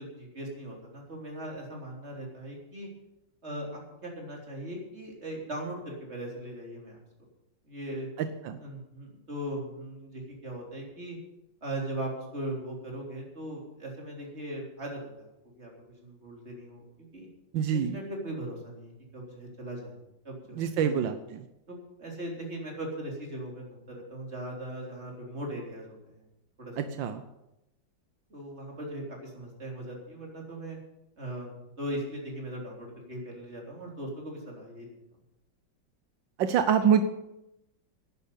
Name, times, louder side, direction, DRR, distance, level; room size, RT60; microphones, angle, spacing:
voice 1, 0.0-2.9 3.4-7.0 7.6-8.1 8.6-11.2 11.6-16.8 17.1-17.3 17.7-20.0 20.2-21.1 21.7-26.1 26.6-26.7 28.3-30.8 31.2-34.9, right 1 dB, 35° right, -1 dB, 4.0 m, -39 dB
voice 2, 17.5-18.0 20.6-21.4 26.8-27.2 36.4-37.0, right 8 dB, 85° right, 8 dB, 1.5 m, -25 dB
11.0 x 10.5 x 8.5 m, 0.90 s
omnidirectional pair, 2.0 m